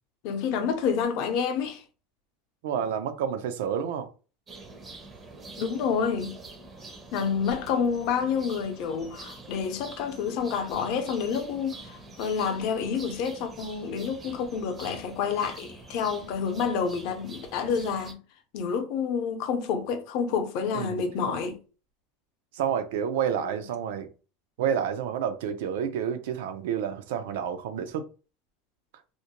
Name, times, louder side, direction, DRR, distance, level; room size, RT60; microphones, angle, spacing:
voice 1, 0.2-1.8 5.5-6.3 7.1-18.2 18.5-21.6, left 6 dB, 55° left, 0.6 m, -28 dB
voice 2, 2.6-4.1 20.7-21.3 22.5-24.1 24.6-28.0, right 8 dB, 80° right, 0.5 m, -29 dB
sound 1, 4.5-18.1, right 2 dB, 20° right, 0.5 m, -46 dB
2.5 x 2.1 x 2.9 m
supercardioid pair, 150°, 0 cm